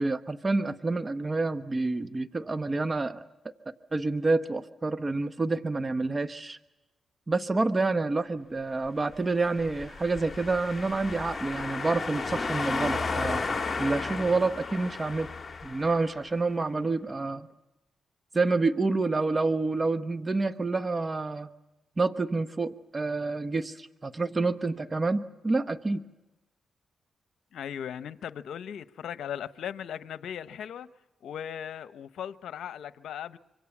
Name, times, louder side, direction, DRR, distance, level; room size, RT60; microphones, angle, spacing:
voice 1, 0.0-3.2 3.9-6.6 7.3-13.4 13.8-15.3 15.6-17.5 18.3-21.5 22.0-26.0, right 3 dB, 30° right, 1.2 m, -28 dB
sound 1, 9.5-16.2, left 4 dB, 35° left, 2.5 m, -33 dB
voice 2, 27.5-30.9 31.2-33.4, left 9 dB, 80° left, 0.9 m, -38 dB
26.0 x 25.5 x 7.3 m
cardioid pair, 60°, 0 cm